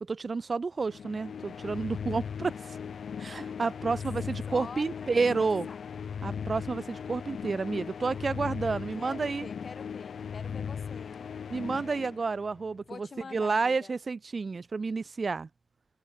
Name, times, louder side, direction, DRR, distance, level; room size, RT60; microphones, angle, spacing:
voice 1, 0.0-2.8 3.2-5.7 6.2-9.5 11.5-15.5, right 4 dB, 35° right, 0.3 m, -30 dB
sound 1, 0.8-12.7, left 7 dB, 65° left, 2.3 m, -38 dB
voice 2, 4.5-5.1 5.4-5.8 8.6-11.3 12.9-13.9, left 5 dB, 40° left, 1.5 m, -46 dB
wide cardioid pair, 130°, 0 cm